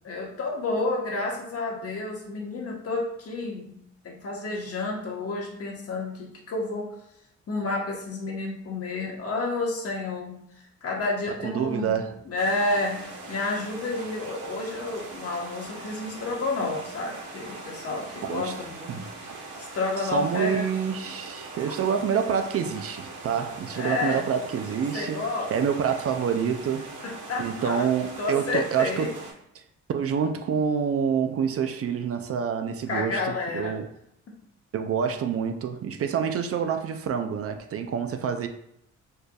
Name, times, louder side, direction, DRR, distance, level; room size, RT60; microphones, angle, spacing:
voice 1, 0.0-3.8 4.0-6.9 7.5-10.4 10.8-12.0 12.3-19.0 19.4-20.7 23.7-24.2 24.9-25.5 27.0-27.8 28.2-29.1 32.9-33.7, left 2 dB, 50° left, 1.2 m, -30 dB
voice 2, 11.4-12.2 18.2-19.1 20.0-25.2 25.5-26.9 27.4-29.1 29.5-29.6 29.9-33.9 34.7-38.5, right 7 dB, 50° right, 0.5 m, -27 dB
sound 1, 12.4-29.3, right 3 dB, 85° right, 1.4 m, -41 dB
4.5 x 3.2 x 2.3 m
cardioid pair, 90°, 30 cm